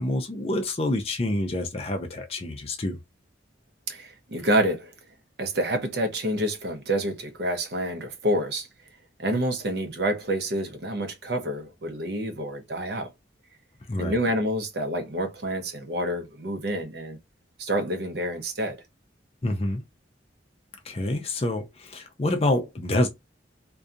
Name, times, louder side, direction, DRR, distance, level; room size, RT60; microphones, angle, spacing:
voice 1, 0.0-3.0 13.9-14.2 19.4-19.8 20.8-23.1, left 1 dB, 30° left, 0.4 m, -27 dB
voice 2, 3.9-4.9 5.4-8.7 9.2-13.1 14.0-17.2 17.6-18.8, right 1 dB, 60° right, 0.6 m, -28 dB
2.7 x 2.2 x 2.4 m
head